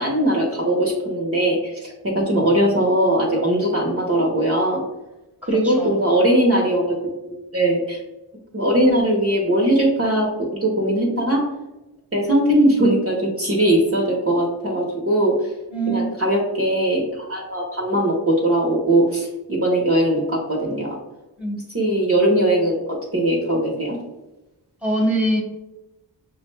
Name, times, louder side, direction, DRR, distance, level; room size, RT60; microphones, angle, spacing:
voice 1, 0.0-4.8 5.5-8.0 8.5-10.3 10.6-11.4 12.1-15.3 15.9-21.0 21.7-24.0, right 1 dB, 30° right, -2 dB, 1.0 m, -20 dB
voice 2, 5.5-5.9 15.7-16.1 21.4-21.6 24.8-25.4, right 1 dB, 5° right, 0 dB, 1.4 m, -23 dB
5.9 x 2.2 x 3.2 m, 1.0 s
cardioid pair, 40°, 45 cm